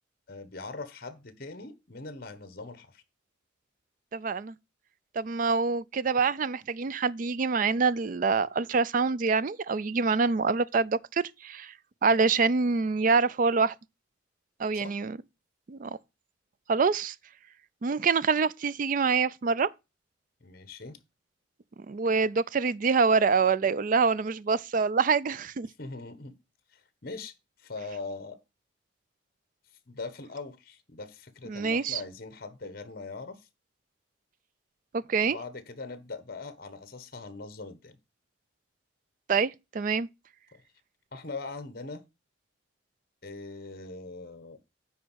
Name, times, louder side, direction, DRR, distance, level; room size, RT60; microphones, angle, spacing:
voice 1, 0.3-3.0 14.7-14.9 20.4-21.0 25.8-26.3 26.7-27.3 27.6-28.4 29.9-33.4 35.2-38.0 40.5-40.6 41.1-42.0 43.2-44.6, left 3 dB, 50° left, 1.3 m, -41 dB
voice 2, 4.1-4.5 5.1-11.7 12.0-13.7 14.6-15.2 15.7-16.0 16.7-17.1 17.8-19.7 21.9-25.7 31.5-32.0 34.9-35.4 39.3-40.1, right 5 dB, 45° right, 0.4 m, -26 dB
9.7 x 4.0 x 6.2 m
head